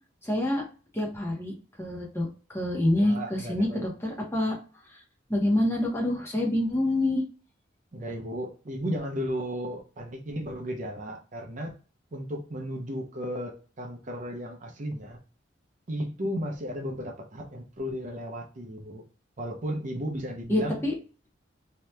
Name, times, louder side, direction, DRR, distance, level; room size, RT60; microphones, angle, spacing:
voice 1, 0.2-0.6 0.9-4.6 5.3-7.2 20.5-20.9, left 1 dB, 15° left, -1 dB, 0.8 m, -27 dB
voice 2, 3.0-3.9 7.9-11.8 12.1-15.2 15.9-19.0 19.4-20.8, equal, 40° right, 2 dB, 0.6 m, -34 dB
2.8 x 2.2 x 3.2 m, 0.37 s
head